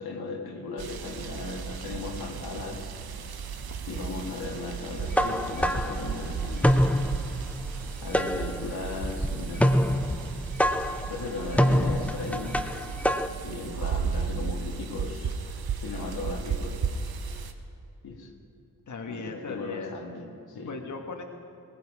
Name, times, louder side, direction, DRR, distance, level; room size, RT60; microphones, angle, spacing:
voice 1, 0.0-3.2 3.9-6.7 8.0-9.7 11.1-16.9 18.0-18.3 19.1-20.8, left 3 dB, 90° left, 1 dB, 1.8 m, -37 dB
sound 1, 0.8-17.5, right 6 dB, 80° right, 1.0 m, -35 dB
sound 2, 4.9-13.3, equal, 5° left, 0.7 m, -26 dB
voice 2, 17.2-17.5 18.9-20.0 20.7-21.2, left 4 dB, 55° left, 3 dB, 1.4 m, -38 dB
17.5 x 16.0 x 4.9 m, 2.5 s
cardioid pair, 55°, 36 cm